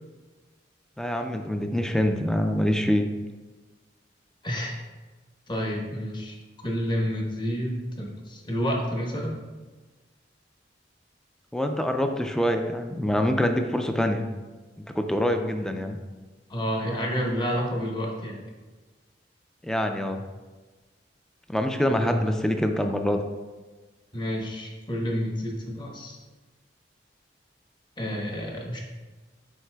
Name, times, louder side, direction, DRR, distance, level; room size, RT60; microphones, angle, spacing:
voice 1, 1.0-3.1 11.5-14.3 14.8-16.0 19.6-20.3 21.5-23.2, left 1 dB, 5° left, 5 dB, 0.3 m, -25 dB
voice 2, 4.4-4.8 5.5-6.4 6.6-9.4 16.5-18.4 21.9-22.4 24.1-26.2 28.0-28.8, equal, 25° left, 0 dB, 1.0 m, -29 dB
11.0 x 4.0 x 2.2 m, 1.3 s
head